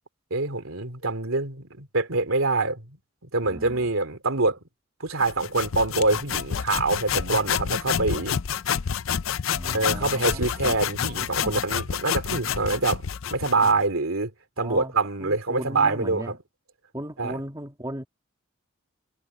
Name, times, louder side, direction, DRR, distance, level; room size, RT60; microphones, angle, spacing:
voice 1, 0.3-2.9 3.2-4.6 5.0-8.4 9.7-13.0 13.3-14.3 14.6-16.4 17.2-17.4, right 3 dB, 85° right, 2.8 m, -25 dB
voice 2, 3.4-3.9 9.5-10.7 11.4-11.5 13.6-13.7 14.6-14.9 15.2-16.3 16.9-18.0, right 1 dB, 15° right, 2.6 m, -37 dB
sound 1, 5.2-13.8, left 8 dB, 75° left, 0.5 m, -28 dB
head